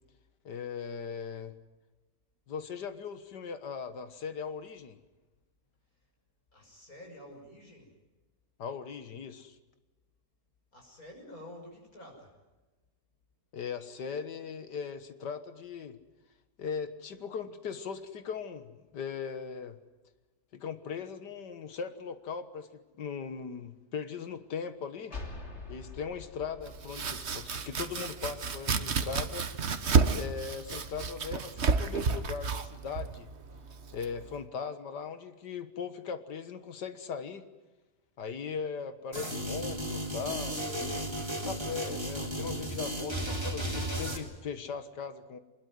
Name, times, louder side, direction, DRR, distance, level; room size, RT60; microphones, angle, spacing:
voice 1, 0.5-1.5 2.5-5.0 8.6-9.6 13.5-16.0 16.6-19.8 20.5-25.2 25.7-29.5 30.1-33.3 33.9-37.5 38.2-41.1 41.4-45.4, left 6 dB, 80° left, 10 dB, 2.0 m, -39 dB
voice 2, 6.5-7.9 10.7-12.3, left 1 dB, 55° left, 1 dB, 6.7 m, -49 dB
sound 1, 25.1-28.6, left 3 dB, 40° left, 3.2 m, -46 dB
Domestic sounds home sounds, 26.6-34.4, right 5 dB, 45° right, 1.4 m, -31 dB
sound 2, 39.1-44.2, right 1 dB, 15° right, 3.5 m, -34 dB
23.5 x 21.0 x 9.4 m, 1.1 s
omnidirectional pair, 1.8 m